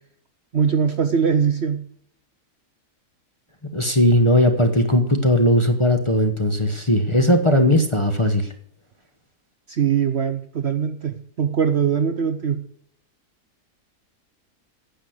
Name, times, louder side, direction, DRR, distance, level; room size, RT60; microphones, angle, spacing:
voice 1, 0.5-1.8 9.7-12.6, right 7 dB, 50° right, 8 dB, 0.9 m, -21 dB
voice 2, 3.7-8.5, left 1 dB, 20° left, 4 dB, 1.1 m, -18 dB
10.0 x 8.0 x 7.9 m, 0.64 s
omnidirectional pair, 1.7 m